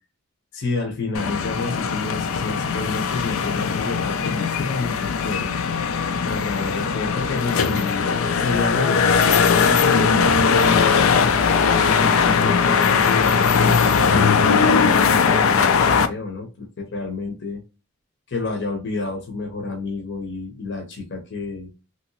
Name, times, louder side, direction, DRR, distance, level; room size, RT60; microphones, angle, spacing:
voice 1, 0.5-5.6 6.2-8.1 8.4-11.0 11.6-17.6 18.3-21.7, left 3 dB, 60° left, 2 dB, 0.8 m, -29 dB
sound 1, 1.1-16.1, left 6 dB, 85° left, 0.4 m, -19 dB
2.9 x 2.8 x 2.7 m, 0.30 s
head